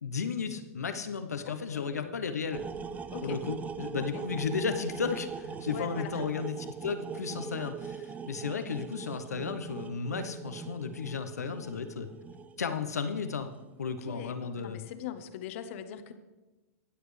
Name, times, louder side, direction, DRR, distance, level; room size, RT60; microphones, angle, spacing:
voice 1, 0.0-2.6 3.2-12.1 12.6-13.5 13.8-14.8, left 6 dB, 85° left, 8 dB, 1.0 m, -34 dB
voice 2, 1.4-2.2 3.1-3.4 4.0-4.2 5.7-6.3 14.0-16.1, left 9 dB, 55° left, 10 dB, 1.1 m, -42 dB
sound 1, 2.5-13.5, right 6 dB, 20° right, 0.6 m, -41 dB
23.0 x 8.0 x 3.3 m, 1.1 s
hypercardioid pair, 110°, 8 cm